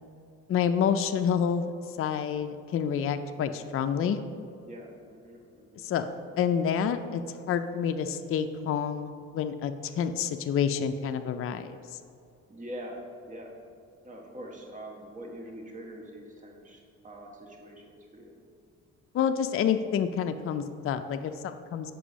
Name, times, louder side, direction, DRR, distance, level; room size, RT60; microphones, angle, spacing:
voice 1, 0.5-4.2 5.8-6.0 6.4-7.2 7.5-12.0 19.1-21.9, left 7 dB, 45° left, 8 dB, 0.4 m, -28 dB
voice 2, 3.3-3.7 4.7-5.9 12.5-13.5 14.0-18.3, equal, 25° right, 0 dB, 1.2 m, -44 dB
6.9 x 5.4 x 5.1 m, 2.4 s
cardioid pair, 90°, 30 cm